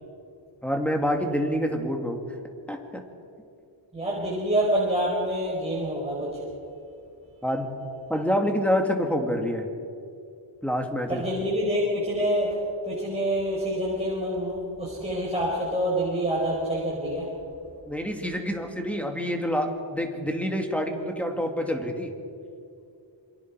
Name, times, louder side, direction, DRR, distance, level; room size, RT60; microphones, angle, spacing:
voice 1, 0.6-2.2 2.7-3.0 7.4-7.7 8.1-9.7 10.6-11.2 17.9-22.1, equal, 5° left, 3 dB, 2.2 m, -27 dB
voice 2, 3.9-6.4 11.1-12.6 12.8-17.3, equal, 15° right, -5 dB, 4.6 m, -27 dB
27.0 x 23.5 x 4.8 m, 2.5 s
wide cardioid pair, 130°, 48 cm